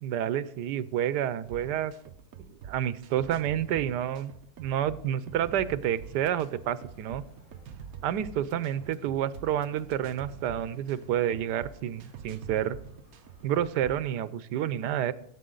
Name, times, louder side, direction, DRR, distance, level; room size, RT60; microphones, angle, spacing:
voice 1, 0.0-1.9 2.5-4.3 4.6-7.2 8.0-12.8 13.4-15.1, right 10 dB, 90° right, 16 dB, 1.3 m, -29 dB
sound 1, 1.4-14.1, right 8 dB, 65° right, 1.2 m, -46 dB
sound 2, 5.1-13.6, right 1 dB, 45° right, 5.1 m, -58 dB
16.5 x 8.3 x 3.8 m, 0.70 s
omnidirectional pair, 1.8 m